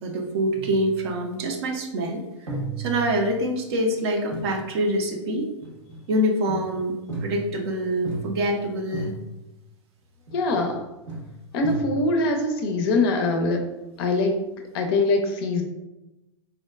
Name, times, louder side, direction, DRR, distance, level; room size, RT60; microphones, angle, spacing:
voice 1, 0.0-5.5 6.1-7.0 7.2-9.1, equal, 55° right, 3 dB, 0.5 m, -25 dB
sound 1, 0.5-1.4 2.5-3.7 4.3-4.6 5.6-6.1 6.5-7.7 8.0-8.6 8.9-9.5 10.3-10.8 11.1-12.3, right 3 dB, 75° right, 1.1 m, -35 dB
voice 2, 10.3-10.8 11.5-13.6 14.0-14.3 14.7-15.6, left 2 dB, 50° left, 4 dB, 0.4 m, -23 dB
3.6 x 2.1 x 2.2 m, 0.98 s
hypercardioid pair, 105°, 16 cm